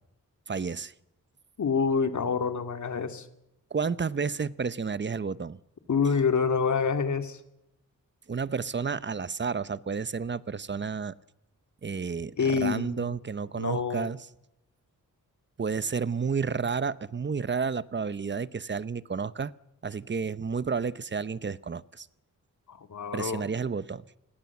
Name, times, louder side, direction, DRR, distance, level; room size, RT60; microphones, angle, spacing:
voice 1, 0.5-0.9 3.7-5.6 6.0-6.1 8.3-11.1 11.8-14.3 15.6-19.5 19.8-22.1 23.1-24.2, right 5 dB, 35° right, 0.8 m, -31 dB
voice 2, 1.6-3.3 5.9-7.4 12.4-13.0 13.6-14.1 22.7-23.4, left 5 dB, 60° left, 2.3 m, -27 dB
27.5 x 20.5 x 7.3 m
wide cardioid pair, 100°, 33 cm